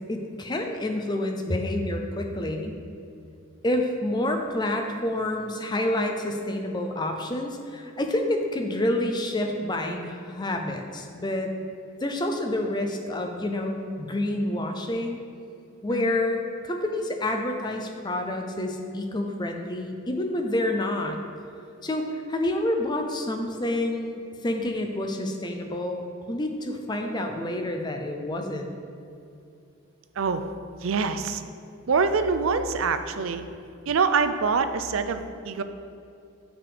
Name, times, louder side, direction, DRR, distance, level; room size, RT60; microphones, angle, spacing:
voice 1, 0.1-2.8 3.6-11.5 12.0-15.2 15.8-21.2 21.8-28.7, left 1 dB, 20° left, 4 dB, 0.5 m, -28 dB
voice 2, 15.9-16.2 30.2-30.4 30.8-31.4 31.9-33.4 33.9-35.6, right 5 dB, 75° right, 9 dB, 0.5 m, -25 dB
6.6 x 6.0 x 5.1 m, 2.6 s
head